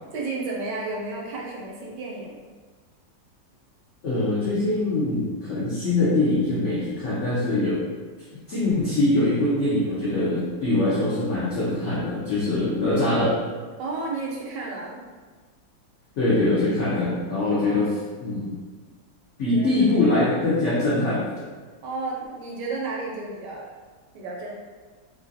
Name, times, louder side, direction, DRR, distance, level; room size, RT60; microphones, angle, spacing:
voice 1, 0.1-2.4 13.8-15.0 17.6-17.9 19.5-20.1 21.8-23.7 24.1-24.5, right 3 dB, 75° right, -2 dB, 1.1 m, -32 dB
voice 2, 4.0-7.8 8.5-13.4 16.2-17.9 18.2-18.5 19.4-21.2, left 2 dB, 80° left, -9 dB, 0.6 m, -23 dB
3.1 x 2.6 x 2.5 m, 1.4 s
omnidirectional pair, 2.1 m